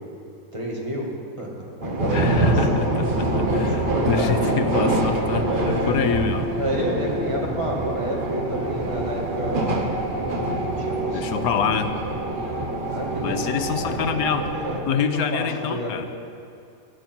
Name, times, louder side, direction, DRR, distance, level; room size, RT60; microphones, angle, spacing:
voice 1, 0.5-1.1 1.4-3.1 3.7-4.5 5.4-6.0 6.6-9.7 10.6-11.5 12.9-14.2 14.5-15.0 15.3-16.1, equal, 20° right, -3 dB, 2.2 m, -30 dB
sound 1, 1.8-14.8, right 2 dB, 40° right, 1.4 m, -25 dB
voice 2, 2.1-6.5 11.1-11.9 13.2-14.5 14.8-16.1, left 7 dB, 90° left, 8 dB, 1.3 m, -26 dB
17.5 x 10.5 x 4.5 m, 2.4 s
omnidirectional pair, 1.5 m